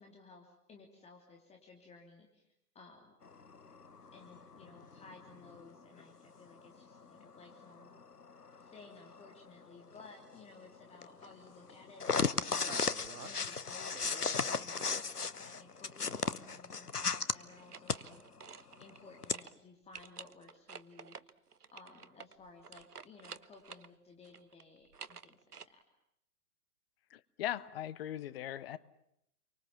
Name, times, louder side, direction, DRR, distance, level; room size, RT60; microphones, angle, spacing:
voice 1, 0.0-2.5 2.7-3.1 4.1-8.0 8.6-14.9 15.2-21.3 21.7-25.4 25.6-25.8, left 3 dB, 15° left, 2 dB, 3.0 m, -57 dB
sound 1, 3.2-6.0 6.6-17.3 17.9-18.0 18.4-18.5 18.8-19.3, left 5 dB, 85° left, 1.1 m, -36 dB
sound 2, 12.7-13.6 13.9-15.2 17.4-19.1 19.3-19.5 19.9-23.9 24.2-25.7, right 5 dB, 85° right, 1.0 m, -51 dB
voice 2, 27.1-28.8, left 12 dB, 40° left, 17 dB, 1.1 m, -39 dB
30.0 x 24.5 x 7.3 m, 0.77 s
figure-of-eight pair, 115°, 45 cm